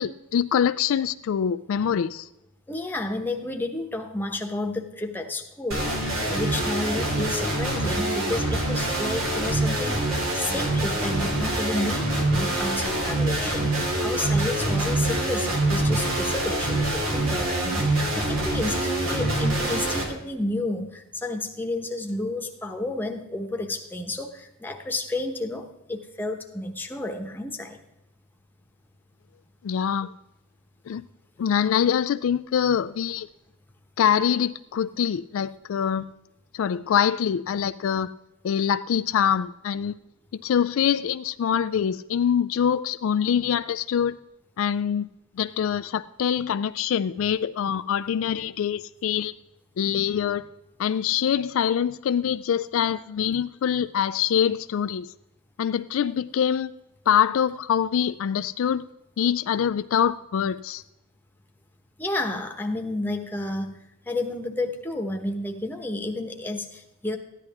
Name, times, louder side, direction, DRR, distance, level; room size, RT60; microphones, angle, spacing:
voice 1, 0.0-2.3 29.6-30.1 30.9-31.0 31.4-33.3 34.0-36.1 36.5-38.1 38.4-40.0 40.4-44.2 44.6-45.1 45.4-49.3 49.8-50.4 50.8-55.1 55.6-56.7 57.1-58.8 59.2-60.8, left 8 dB, 65° left, 13 dB, 0.3 m, -24 dB
voice 2, 2.7-5.9 6.3-27.8 62.0-63.8 64.1-67.2, left 2 dB, 10° left, 3 dB, 1.1 m, -31 dB
sound 1, 5.7-20.0, right 1 dB, 75° right, 2.9 m, -25 dB
14.0 x 10.5 x 3.5 m, 0.88 s
head